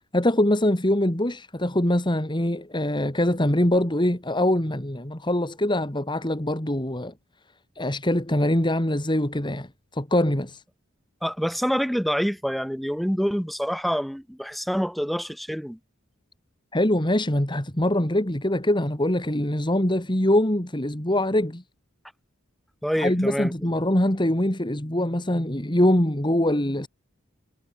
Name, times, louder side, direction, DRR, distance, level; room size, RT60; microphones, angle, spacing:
voice 1, 0.1-7.1 7.8-10.6 16.7-21.6 23.0-26.9, left 1 dB, 25° left, 2.6 m, -23 dB
voice 2, 11.2-15.8 22.8-23.5, equal, ahead, 1.5 m, -26 dB
head